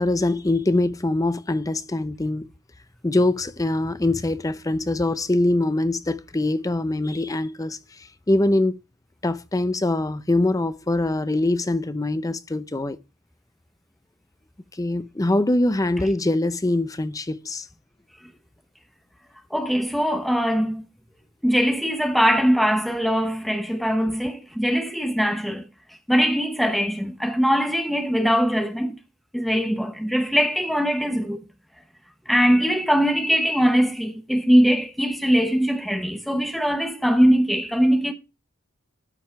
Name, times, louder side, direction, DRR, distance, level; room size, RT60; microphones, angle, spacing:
voice 1, 0.0-2.5 3.0-8.8 9.2-13.0 14.7-17.7, left 2 dB, 15° left, 0.5 m, -23 dB
voice 2, 19.5-20.8 21.4-25.6 26.1-29.0 29.3-31.4 32.3-38.1, equal, ahead, 0.9 m, -21 dB
13.0 x 5.4 x 4.4 m
head